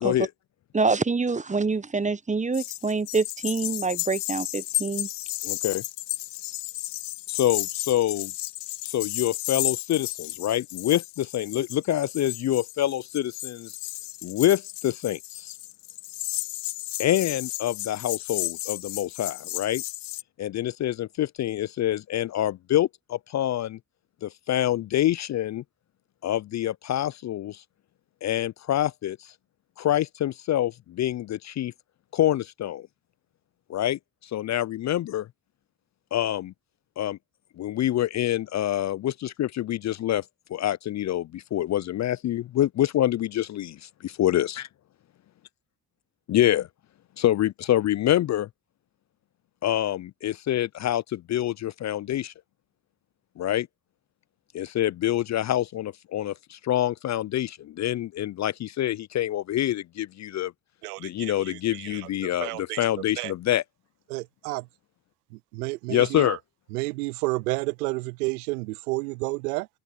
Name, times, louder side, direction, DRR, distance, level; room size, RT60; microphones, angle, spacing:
voice 1, 0.0-0.3 5.4-5.8 7.3-8.3 8.8-13.8 14.2-15.5 17.0-19.8 20.4-23.8 24.2-25.6 26.2-27.6 28.2-29.3 29.8-31.7 32.1-32.9 33.7-35.3 36.1-36.5 37.0-37.2 37.6-40.2 40.5-44.6 46.3-46.7 47.2-48.5 49.6-52.3 53.4-53.7 54.5-60.5 61.0-63.6 65.9-66.4, left 12 dB, 40° left, 0.5 m, -26 dB
voice 2, 0.7-5.1, right 4 dB, 15° right, 1.1 m, -26 dB
sound 1, 2.5-20.2, left 18 dB, 65° left, 0.8 m, -33 dB
voice 3, 60.8-62.1 62.4-62.8 63.2-63.3 64.1-64.7 65.5-66.4 66.7-69.7, right 24 dB, 90° right, 0.6 m, -31 dB
hypercardioid pair, 55°, 45 cm